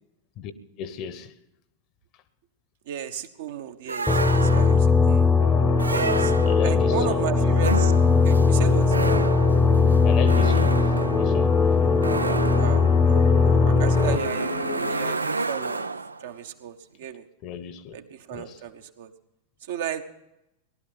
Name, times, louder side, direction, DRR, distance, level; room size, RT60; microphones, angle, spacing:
voice 1, 0.8-1.3 6.4-7.4 10.0-11.7 17.4-18.0 18.3-18.6, left 8 dB, 40° left, 1.0 m, -35 dB
voice 2, 2.9-5.3 5.9-6.3 6.6-7.9 8.2-9.0 12.5-15.9 16.2-17.3 17.9-19.1 19.7-20.0, right 9 dB, 55° right, 1.0 m, -35 dB
sound 1, 3.9-5.0 5.8-6.8 7.6-16.3, right 3 dB, 80° right, 0.4 m, -30 dB
sound 2, 4.1-14.2, left 4 dB, 5° left, 0.9 m, -19 dB
sound 3, 5.4-15.1, left 4 dB, 70° left, 1.4 m, -34 dB
18.5 x 12.0 x 5.6 m
figure-of-eight pair, 90°, 0 cm